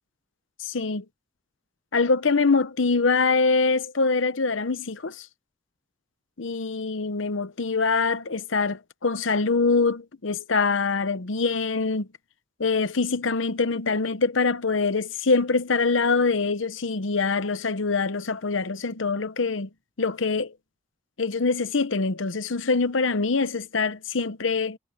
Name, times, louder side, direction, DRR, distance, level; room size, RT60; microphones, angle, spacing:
voice 1, 0.6-1.0 1.9-5.3 6.4-12.1 12.6-19.7 20.0-20.5 21.2-24.8, left 4 dB, 85° left, 0.9 m, -24 dB
head